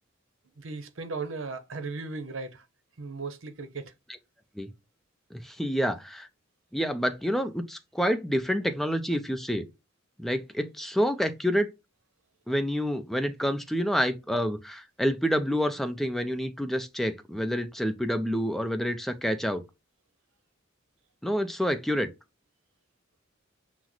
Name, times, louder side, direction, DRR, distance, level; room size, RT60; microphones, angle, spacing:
voice 1, 0.6-2.7 3.0-3.9, right 3 dB, 80° right, 0.7 m, -36 dB
voice 2, 5.3-6.3 6.7-9.7 10.2-11.7 12.5-19.6 21.2-22.1, equal, ahead, 0.5 m, -28 dB
5.9 x 2.1 x 3.0 m
head